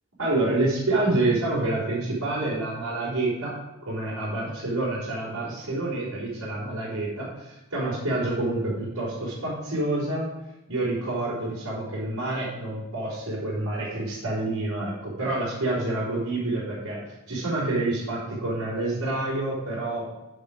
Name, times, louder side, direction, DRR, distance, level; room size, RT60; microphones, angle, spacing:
voice 1, 0.2-3.5 3.9-10.3 10.7-20.1, right 2 dB, 80° right, -9 dB, 4.0 m, -28 dB
9.7 x 7.8 x 5.0 m, 0.99 s
head